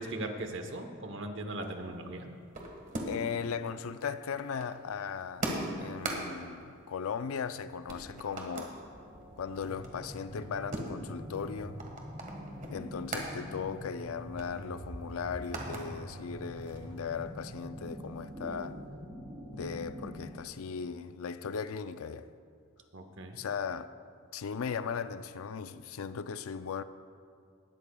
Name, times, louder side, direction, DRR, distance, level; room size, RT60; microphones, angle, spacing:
voice 1, 0.0-2.3 22.9-23.4, right 1 dB, 60° right, 1.0 m, -39 dB
sound 1, 1.5-3.4 3.7-7.6 7.9-8.8 9.2-13.3 13.7-13.8 14.1-15.8 16.3-17.1, right 1 dB, 40° right, 1.6 m, -41 dB
voice 2, 3.1-5.5 5.8-8.8 9.4-11.8 12.7-18.8 19.5-22.3 23.4-23.9 24.3-26.8, left 6 dB, 75° left, 0.4 m, -37 dB
sound 2, 8.7-20.3, equal, 15° right, 3.2 m, -45 dB
18.5 x 13.0 x 2.3 m
head